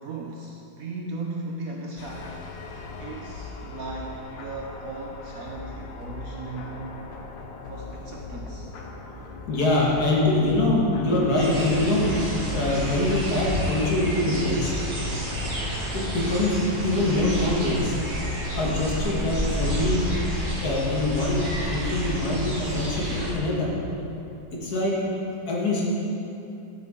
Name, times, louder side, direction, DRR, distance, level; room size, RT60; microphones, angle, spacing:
voice 1, 0.0-2.4 3.0-6.8 7.6-8.7, right 3 dB, 65° right, -1 dB, 0.9 m, -37 dB
sound 1, 2.0-16.4, left 3 dB, 80° left, 1.4 m, -39 dB
voice 2, 9.5-12.1 12.4-14.7 15.9-16.6 16.8-18.0 18.6-20.0 20.6-23.7 24.5-24.9 25.5-25.8, left 2 dB, 55° left, -4 dB, 1.9 m, -24 dB
sound 2, 11.4-23.3, right 1 dB, 30° right, 1.6 m, -30 dB
9.3 x 7.9 x 3.7 m, 2.8 s
omnidirectional pair, 2.0 m